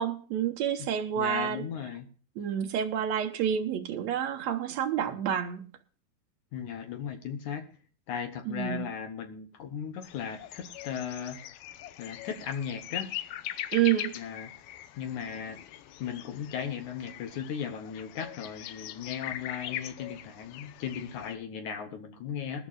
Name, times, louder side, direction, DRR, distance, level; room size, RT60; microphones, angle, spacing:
voice 1, 0.0-1.6 2.4-5.6 8.5-8.8 13.7-14.1, right 9 dB, 70° right, 1.7 m, -29 dB
voice 2, 1.2-2.1 6.5-7.6 8.1-11.4 12.0-13.1 14.1-14.5 15.0-15.6 16.0-22.7, left 8 dB, 65° left, 2.1 m, -37 dB
sound 1, 10.0-21.4, left 13 dB, 90° left, 2.7 m, -41 dB
21.0 x 11.5 x 2.3 m
omnidirectional pair, 4.1 m